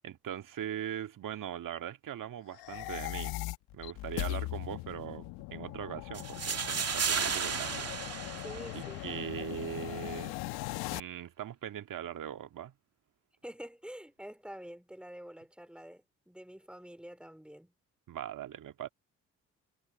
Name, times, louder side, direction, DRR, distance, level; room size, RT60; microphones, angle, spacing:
voice 1, 0.0-3.4 3.7-7.9 8.7-10.3 10.9-12.7 18.1-18.9, right 10 dB, 55° right, 1.9 m, -40 dB
sound 1, 2.5-11.0, left 19 dB, 75° left, 1.8 m, -39 dB
sound 2, 6.1-9.2, right 6 dB, 40° right, 2.4 m, -34 dB
voice 2, 8.4-9.0 13.4-17.7, equal, 5° right, 4.2 m, -47 dB
hypercardioid pair, 50°, 37 cm